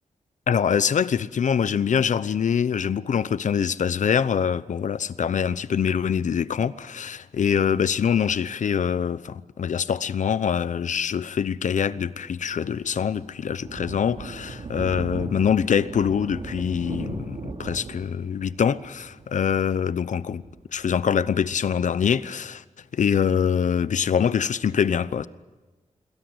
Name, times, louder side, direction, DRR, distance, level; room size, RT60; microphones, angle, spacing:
voice 1, 0.5-20.4 20.7-22.6 22.9-25.3, left 7 dB, 75° left, 0.9 m, -24 dB
Thunder, 12.4-21.5, right 3 dB, 50° right, 2.8 m, -38 dB
27.5 x 22.5 x 8.0 m
wide cardioid pair, 175°, 13 cm